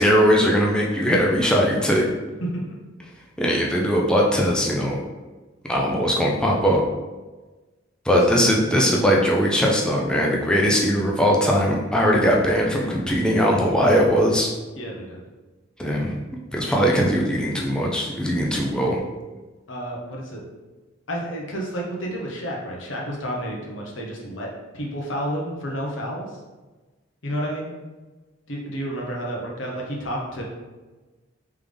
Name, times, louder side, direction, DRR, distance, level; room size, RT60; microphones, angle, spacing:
voice 1, 0.0-2.1 3.4-5.0 5.7-6.8 8.1-14.5 15.8-16.2 16.5-19.0, equal, 5° left, -2 dB, 0.4 m, -20 dB
voice 2, 2.4-2.8 8.1-8.2 14.8-15.2 19.7-20.4 21.1-24.5 24.7-26.3 27.2-27.7 28.5-30.4, equal, 75° left, -2 dB, 1.0 m, -30 dB
3.7 x 3.4 x 3.4 m, 1.2 s
head